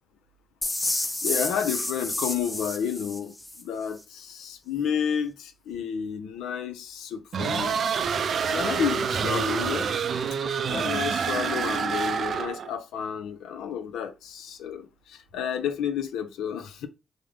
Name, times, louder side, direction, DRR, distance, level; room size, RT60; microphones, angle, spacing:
sound 1, 0.6-3.6, left 1 dB, 20° left, 0.7 m, -30 dB
voice 1, 1.2-7.8 8.2-9.9 10.7-16.9, left 8 dB, 85° left, 0.4 m, -31 dB
sound 2, 7.3-12.7, right 6 dB, 65° right, 0.3 m, -27 dB
3.6 x 2.0 x 3.2 m
supercardioid pair, 50°, 0 cm